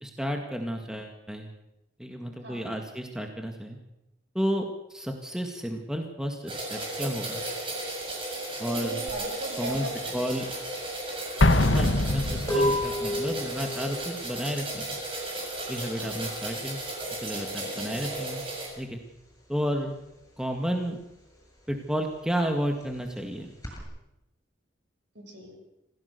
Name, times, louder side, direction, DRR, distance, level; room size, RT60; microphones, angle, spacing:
voice 1, 0.0-1.5 2.0-3.8 4.3-7.4 8.6-9.0 9.6-9.9 10.1-10.5 11.6-15.0 15.7-16.8 17.1-18.4 18.8-19.0 19.5-19.9 20.4-21.0 21.7-23.5, equal, 5° right, 3 dB, 1.9 m, -32 dB
voice 2, 2.4-2.7 8.7-10.3 16.0-16.2 17.7-18.0 25.1-25.6, right 1 dB, 65° right, 3 dB, 5.9 m, -38 dB
sound 1, 6.5-18.7, right 2 dB, 25° right, 7.3 m, -35 dB
sound 2, 9.1-19.3 19.6-23.8, left 1 dB, 15° left, 7.4 m, -34 dB
Explosion, 11.4-13.1, left 2 dB, 70° left, 1.5 m, -23 dB
27.5 x 16.0 x 6.8 m, 0.88 s
head